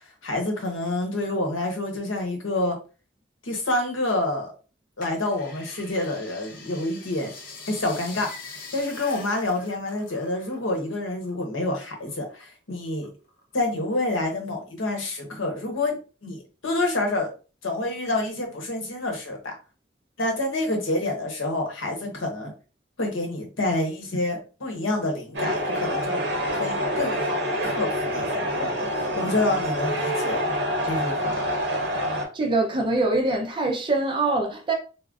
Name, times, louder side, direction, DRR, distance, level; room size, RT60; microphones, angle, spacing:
voice 1, 0.2-2.8 3.4-4.5 5.0-7.3 7.7-8.3 8.7-13.1 13.5-17.3 17.6-19.5 20.2-22.5 23.0-26.2 26.5-30.4 30.8-31.5, left 2 dB, 90° left, 0.9 m, -28 dB
sound 1, 5.0-10.8 11.1-12.4 12.9-13.7 14.2-14.3, left 3 dB, 45° left, 0.7 m, -43 dB
sound 2, 25.3-32.2, equal, 60° right, 0.8 m, -26 dB
voice 2, 32.3-34.7, right 2 dB, 25° right, 0.5 m, -24 dB
3.7 x 2.0 x 2.4 m
head